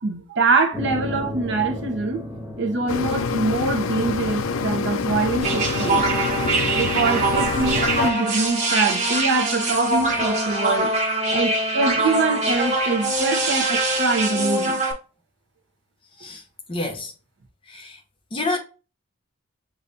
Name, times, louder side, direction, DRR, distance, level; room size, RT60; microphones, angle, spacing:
voice 1, 0.0-2.2 2.6-6.1 6.8-10.9 11.3-14.8, right 3 dB, 55° right, 0.7 m, -24 dB
sound 1, 0.7-5.6, equal, ahead, 1.1 m, -35 dB
sound 2, 2.9-8.1, left 5 dB, 70° left, 0.4 m, -26 dB
sound 3, 5.4-14.9, right 2 dB, 35° right, 1.0 m, -23 dB
voice 2, 16.7-17.1 17.7-18.0 18.3-18.6, left 2 dB, 25° left, 0.8 m, -28 dB
6.8 x 2.4 x 2.6 m
head